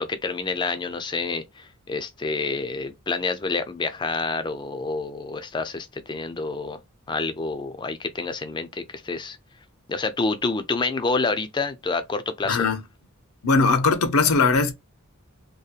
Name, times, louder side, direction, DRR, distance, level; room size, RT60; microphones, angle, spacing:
voice 1, 0.0-6.8 7.1-9.4 9.9-12.7, left 3 dB, 20° left, 0.3 m, -28 dB
voice 2, 12.5-12.8 13.4-14.7, left 4 dB, 75° left, 0.6 m, -20 dB
2.7 x 2.2 x 2.4 m
head